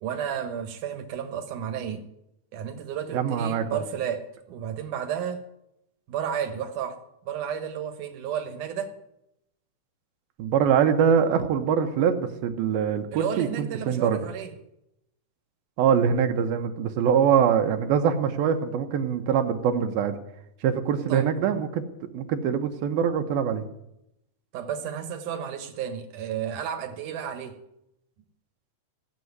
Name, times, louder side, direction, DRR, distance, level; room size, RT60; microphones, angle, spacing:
voice 1, 0.0-2.1 2.5-5.4 6.1-7.0 7.3-8.9 13.1-14.5 21.1-21.3 24.5-27.6, right 8 dB, 65° right, 2.6 m, -32 dB
voice 2, 3.1-3.8 10.4-14.2 15.8-20.2 20.6-21.8 22.1-23.6, right 7 dB, 85° right, 3.0 m, -23 dB
16.5 x 7.6 x 9.5 m
omnidirectional pair, 4.1 m